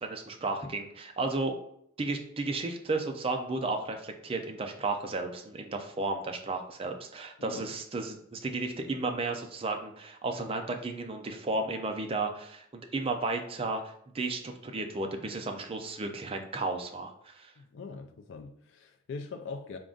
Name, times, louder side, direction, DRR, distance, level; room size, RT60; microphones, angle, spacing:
voice 1, 0.0-1.5 2.0-17.5, right 3 dB, 30° right, 4 dB, 0.4 m, -33 dB
voice 2, 17.6-19.8, left 4 dB, 65° left, 4 dB, 0.4 m, -42 dB
3.7 x 2.4 x 3.6 m, 0.70 s
head